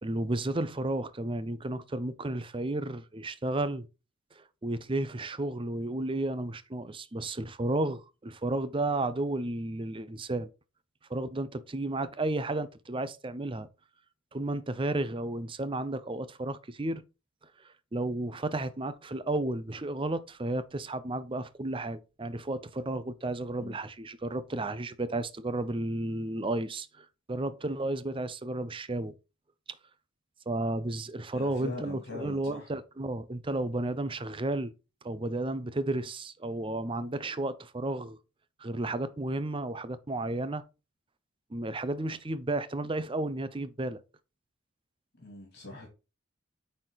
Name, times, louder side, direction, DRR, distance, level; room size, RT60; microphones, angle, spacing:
voice 1, 0.0-3.9 4.4-10.5 11.1-13.7 14.3-17.0 17.9-29.1 30.5-34.7 35.0-38.2 38.6-40.6 41.5-44.0, right 2 dB, 25° right, 0.6 m, -33 dB
voice 2, 31.3-32.7 45.2-45.9, left 2 dB, 55° left, 2.8 m, -42 dB
8.8 x 4.2 x 4.0 m
head